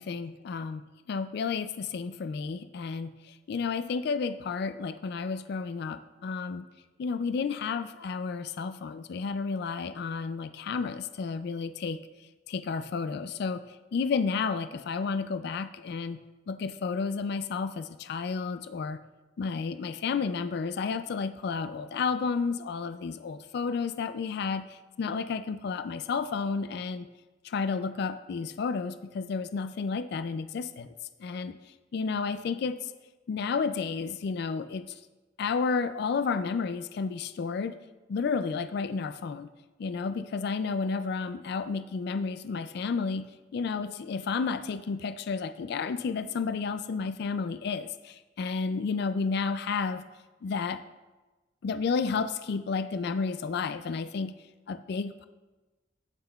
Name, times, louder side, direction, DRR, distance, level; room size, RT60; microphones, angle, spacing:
voice 1, 0.0-3.1 3.5-6.7 7.0-12.0 12.5-13.7 13.9-16.2 16.5-19.0 19.4-27.1 27.4-30.9 31.2-31.6 31.9-32.9 33.3-34.9 35.4-37.8 38.1-39.5 39.8-50.1 50.4-50.8 51.6-54.3 54.7-55.3, left 5 dB, 60° left, 12 dB, 0.3 m, -31 dB
15.5 x 5.6 x 2.3 m, 1.2 s
head